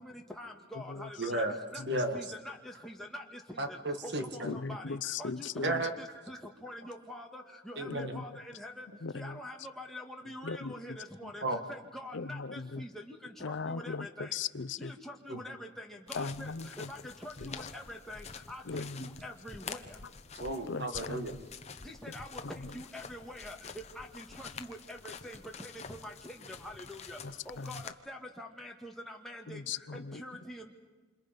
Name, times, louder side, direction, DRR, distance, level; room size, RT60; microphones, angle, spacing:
voice 1, 0.0-1.4 1.7-1.8 2.1-2.6 2.8-3.2 4.3-4.8 5.2-8.3 8.6-8.9 9.1-11.4 11.7-13.2 13.5-14.3 14.8-16.5 16.9-19.8 21.8-22.4 22.7-23.6 24.0-25.7 26.0-26.1 26.6-27.2 27.5-29.6 30.2-30.7, left 1 dB, ahead, 2.0 m, -45 dB
voice 2, 1.2-1.6 1.9-2.2 3.6-4.6 5.6-5.9 7.8-8.2 11.4-11.6 15.3-15.4 20.4-21.4, right 1 dB, 60° right, 1.9 m, -33 dB
voice 3, 4.4-5.7 7.9-8.2 9.0-9.3 10.4-10.7 12.1-12.8 13.4-14.9 16.1-16.7 18.7-18.9 20.7-21.2 27.6-27.7 29.5-30.2, left 4 dB, 75° left, 0.6 m, -37 dB
sound 1, 16.1-27.9, left 5 dB, 35° left, 0.9 m, -47 dB
27.5 x 27.0 x 5.3 m
head